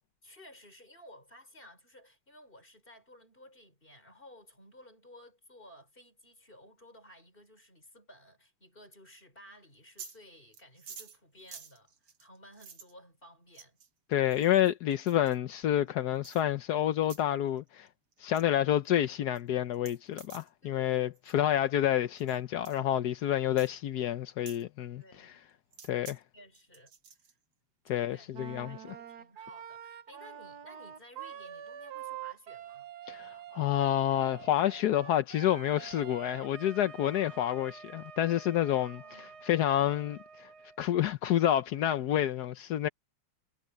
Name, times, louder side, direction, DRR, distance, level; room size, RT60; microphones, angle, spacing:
voice 1, 0.2-13.8 20.6-21.1 24.9-25.4 26.3-26.9 27.9-32.9 37.1-37.5 38.8-39.5, left 1 dB, 25° left, 6.2 m, -56 dB
sound 1, 9.7-10.2 10.5-12.9 13.5-13.9 14.3-15.4 16.2-16.4 17.0-17.2 17.6-17.9 18.1-18.4 18.8-18.9 19.4-19.5 19.7-20.5 21.1-21.4 22.2-22.4 22.7-22.8 23.6-23.7 24.5-24.6 25.7-26.2 26.5-27.3, right 6 dB, 90° right, 3.1 m, -50 dB
voice 2, 14.1-17.9 18.2-25.3 25.9-26.2 27.9-28.8 33.1-39.0 39.4-40.5 40.8-42.9, left 11 dB, 65° left, 1.1 m, -29 dB
Wind instrument woodwind instrument, 28.3-40.8, right 9 dB, 55° right, 1.3 m, -47 dB
omnidirectional pair, 2.4 m